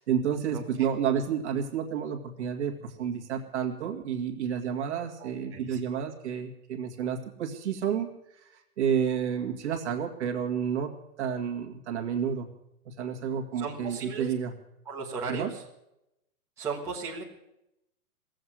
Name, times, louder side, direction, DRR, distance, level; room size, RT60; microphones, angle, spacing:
voice 1, 0.0-10.9 11.2-12.5 12.9-14.5 15.3-15.5, right 8 dB, 45° right, 2 dB, 2.2 m, -30 dB
voice 2, 0.5-0.9 5.2-5.8 13.6-14.3 14.8-15.6 16.6-17.2, right 5 dB, 5° right, -7 dB, 1.4 m, -36 dB
17.5 x 7.9 x 10.0 m, 0.85 s
hypercardioid pair, 170°, 46 cm